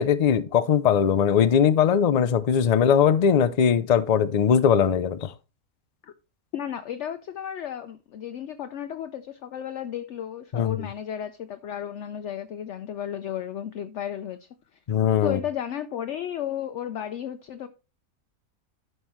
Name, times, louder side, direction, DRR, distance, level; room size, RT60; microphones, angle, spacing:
voice 1, 0.0-5.3 10.5-10.9 14.9-15.4, left 7 dB, 80° left, 0.3 m, -20 dB
voice 2, 6.5-14.5 15.2-17.7, left 10 dB, 65° left, 0.9 m, -33 dB
12.5 x 5.5 x 3.0 m
omnidirectional pair, 1.5 m